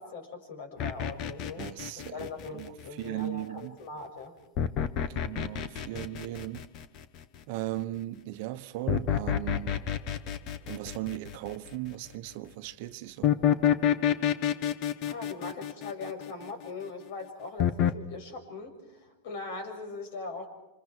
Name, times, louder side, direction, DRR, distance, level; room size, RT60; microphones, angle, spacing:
voice 1, 0.0-1.6 2.1-4.4 15.0-20.5, left 3 dB, 60° left, 6.8 m, -40 dB
sound 1, 0.8-3.0 4.6-7.2 8.9-11.7 13.2-16.6 17.6-17.9, left 9 dB, 40° left, 1.1 m, -28 dB
voice 2, 1.6-2.3 2.5-3.8 4.9-6.7 7.5-9.9 10.7-13.3, right 16 dB, 55° right, 1.1 m, -37 dB
29.0 x 26.0 x 4.6 m
supercardioid pair, 150°, 0 cm